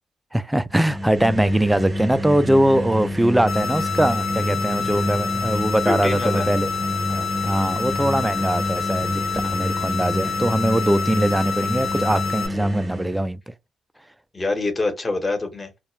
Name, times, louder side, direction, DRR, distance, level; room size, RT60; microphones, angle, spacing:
voice 1, 0.3-6.7 7.4-13.4, right 1 dB, 10° right, 0.3 m, -21 dB
sound 1, 0.7-13.3, left 1 dB, 30° right, 0.7 m, -28 dB
sound 2, 3.5-12.5, left 6 dB, 75° left, 0.9 m, -28 dB
voice 2, 5.8-6.5 7.1-7.3 14.3-15.8, left 2 dB, 30° left, 1.0 m, -25 dB
2.3 x 2.0 x 3.0 m
supercardioid pair, 60°, 0 cm